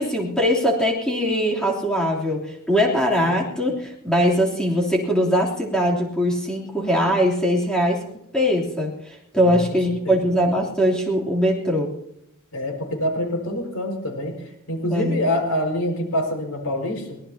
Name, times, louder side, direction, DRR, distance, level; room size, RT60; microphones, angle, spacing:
voice 1, 0.0-8.0 8.3-11.9 14.9-15.2, equal, 5° left, -3 dB, 3.3 m, -21 dB
voice 2, 12.5-17.2, left 1 dB, 90° left, 2 dB, 5.6 m, -26 dB
24.0 x 18.5 x 2.9 m, 0.78 s
head